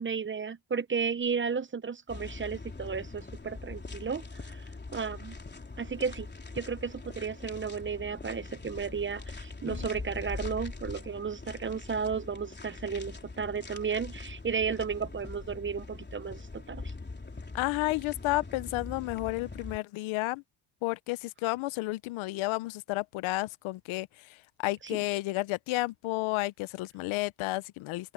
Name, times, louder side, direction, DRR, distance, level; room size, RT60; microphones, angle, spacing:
voice 1, 0.0-4.6 4.9-5.4 5.8-6.3 6.5-16.9 24.9-25.0, right 6 dB, 25° right, 0.8 m, -33 dB
sound 1, 2.1-19.8, left 3 dB, 20° left, 3.6 m, -42 dB
voice 2, 17.5-20.4 20.8-28.1, left 20 dB, 90° left, 0.7 m, -32 dB
cardioid pair, 80°, 47 cm